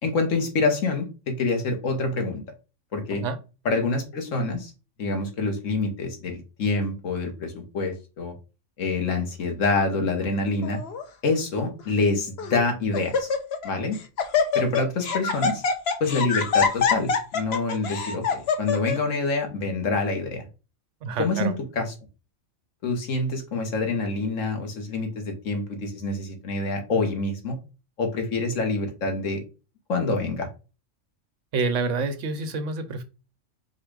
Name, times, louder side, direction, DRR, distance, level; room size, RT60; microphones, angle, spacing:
voice 1, 0.0-2.4 2.9-3.2 3.6-4.7 5.0-8.3 8.8-10.8 11.2-13.3 13.6-14.0 14.5-15.6 16.0-20.5 21.2-21.9 22.8-27.6 28.0-29.4 29.9-30.5, left 3 dB, 85° left, 4 dB, 1.5 m, -26 dB
Laughter, 10.6-11.0 11.8-11.9 12.4-12.7 12.9-13.7 13.9-19.0, left 6 dB, 60° left, 0.9 m, -25 dB
voice 2, 21.0-21.5 31.5-33.0, right 4 dB, 75° right, 9 dB, 1.0 m, -28 dB
4.5 x 2.3 x 4.7 m, 0.31 s
omnidirectional pair, 1.3 m